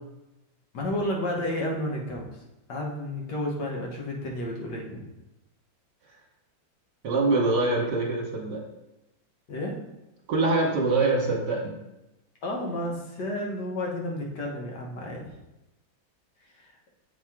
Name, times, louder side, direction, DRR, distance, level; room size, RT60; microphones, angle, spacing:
voice 1, 0.7-2.3 2.7-5.1 9.5-9.8 12.4-15.2 16.6-16.7, left 1 dB, 60° left, -1 dB, 1.6 m, -31 dB
voice 2, 7.0-8.6 10.3-11.8, right 3 dB, 60° right, -1 dB, 1.7 m, -24 dB
7.4 x 4.3 x 3.6 m, 0.96 s
omnidirectional pair, 2.1 m